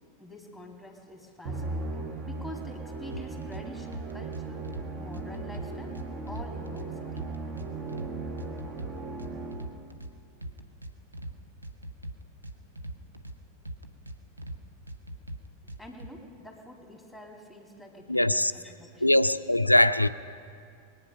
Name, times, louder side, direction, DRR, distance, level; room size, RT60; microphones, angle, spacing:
voice 1, 0.2-4.7 5.0-6.0 6.3-7.3 15.8-19.1, equal, 5° right, 2.4 m, -46 dB
Musical instrument, 1.4-9.9, right 3 dB, 35° right, 1.3 m, -37 dB
sound 1, 3.1-3.6 3.9-4.8 5.1-6.9 7.2-8.1 8.4-10.1 10.4-11.3 11.6-13.4 13.7-14.6 14.9-16.1, right 1 dB, 80° right, 0.9 m, -40 dB
voice 2, 18.1-18.5 19.0-20.1, left 1 dB, 85° left, 0.4 m, -21 dB
22.5 x 9.1 x 5.6 m
figure-of-eight pair, 90°, 0 cm